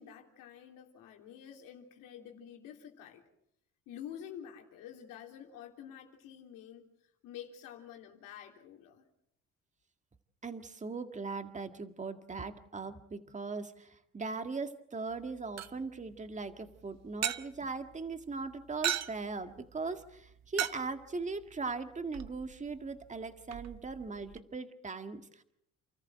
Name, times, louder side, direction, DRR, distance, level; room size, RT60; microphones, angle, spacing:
voice 1, 0.0-3.2 3.9-6.9 7.2-9.1, left 9 dB, 90° left, 3.3 m, -49 dB
voice 2, 10.4-25.4, right 4 dB, 25° right, 1.9 m, -39 dB
sound 1, 15.1-24.4, right 9 dB, 55° right, 1.2 m, -41 dB
29.5 x 14.0 x 7.7 m
cardioid pair, 100°, 32 cm